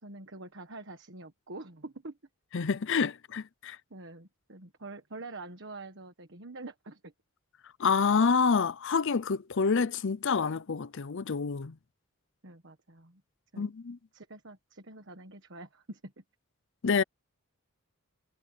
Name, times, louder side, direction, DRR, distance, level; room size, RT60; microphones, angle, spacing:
voice 1, 0.0-2.2 3.9-7.1 12.4-13.2 13.5-13.7 14.1-16.2, right 2 dB, 55° right, 1.5 m, -46 dB
voice 2, 2.5-3.8 7.8-11.8 13.6-14.0 16.8-17.0, left 5 dB, 55° left, 0.6 m, -27 dB
head